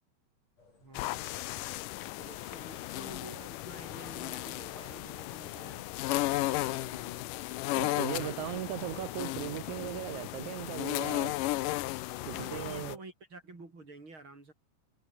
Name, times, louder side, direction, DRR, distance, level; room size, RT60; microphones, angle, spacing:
sound 1, 0.6-5.9, left 3 dB, 50° left, 8.0 m, -61 dB
voice 1, 0.8-1.2 2.0-5.9 6.2-7.2 8.0-8.6 12.3-14.5, right 3 dB, 35° right, 6.8 m, -50 dB
sound 2, 0.9-13.0, left 17 dB, 80° left, 2.4 m, -35 dB
voice 2, 7.8-11.3 12.3-13.0, right 15 dB, 70° right, 2.1 m, -38 dB
omnidirectional pair, 3.8 m